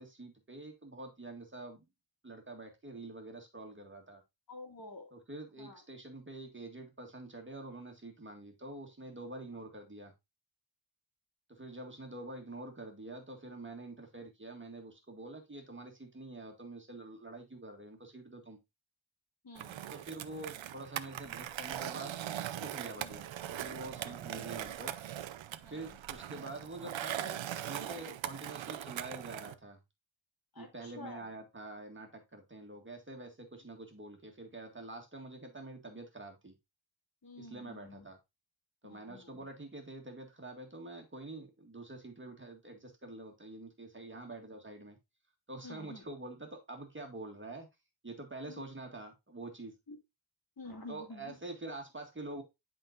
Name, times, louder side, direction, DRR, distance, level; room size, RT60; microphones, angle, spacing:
voice 1, 0.0-1.9 2.2-4.2 5.1-10.1 11.5-18.6 19.9-22.2 22.6-24.9 25.7-29.8 30.6-36.5 37.4-38.2 38.8-45.0 45.5-47.7 48.0-49.7 50.9-52.4, right 2 dB, 25° right, 3 dB, 1.7 m, -46 dB
voice 2, 4.5-5.1 5.6-5.8 19.4-19.7 23.0-23.2 24.0-24.1 25.6-25.9 30.5-31.3 37.2-38.1 38.8-39.3 45.6-46.0 48.5-48.6 49.9-50.0 50.6-51.3, left 2 dB, 50° left, 3 dB, 2.1 m, -49 dB
Skateboard, 19.6-29.5, right 11 dB, 85° right, 0.6 m, -41 dB
11.0 x 3.9 x 2.5 m, 0.22 s
cardioid pair, 75°, 45 cm